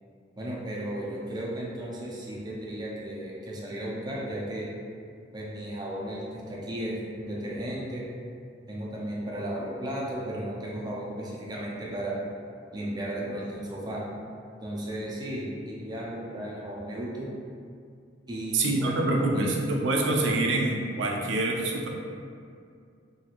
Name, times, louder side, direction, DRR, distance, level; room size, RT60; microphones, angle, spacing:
voice 1, 0.4-4.7 5.3-8.0 8.7-12.2 12.7-14.0 14.6-17.3 18.3-19.5 20.4-20.6, right 1 dB, 20° right, -5 dB, 0.5 m, -35 dB
voice 2, 18.5-21.9, right 2 dB, 75° right, -1 dB, 0.4 m, -26 dB
2.9 x 2.7 x 2.4 m, 2.3 s
head